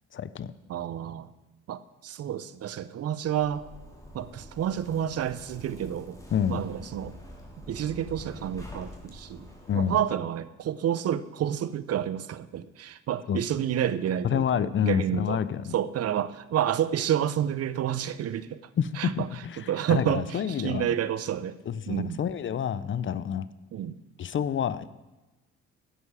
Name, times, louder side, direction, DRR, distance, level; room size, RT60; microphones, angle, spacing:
voice 1, 0.1-0.5 6.3-6.6 9.7-10.0 13.3-13.4 14.2-15.7 18.8-21.0 21.7-23.5 24.2-24.9, left 8 dB, 40° left, 16 dB, 0.5 m, -28 dB
voice 2, 0.7-1.3 1.7-3.6 4.1-6.2 6.5-7.2 7.6-9.5 9.7-14.5 14.8-15.4 15.7-18.6 18.9-21.6 21.9-22.2 23.7-24.0, right 10 dB, 55° right, 15 dB, 0.6 m, -29 dB
Zipper (clothing), 3.2-9.9, left 1 dB, 10° left, 3.2 m, -46 dB
11.0 x 7.9 x 4.8 m, 1.1 s
cardioid pair, 90°, 30 cm